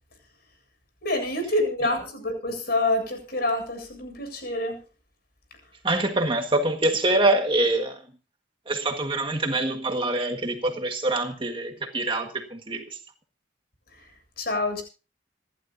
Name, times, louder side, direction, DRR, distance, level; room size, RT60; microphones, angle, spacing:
voice 1, 1.0-4.8 13.9-14.1 14.4-14.8, left 1 dB, 50° left, 7.6 m, -27 dB
voice 2, 5.8-8.0 8.7-13.0, right 2 dB, 25° right, 1.6 m, -25 dB
27.5 x 12.0 x 2.7 m
head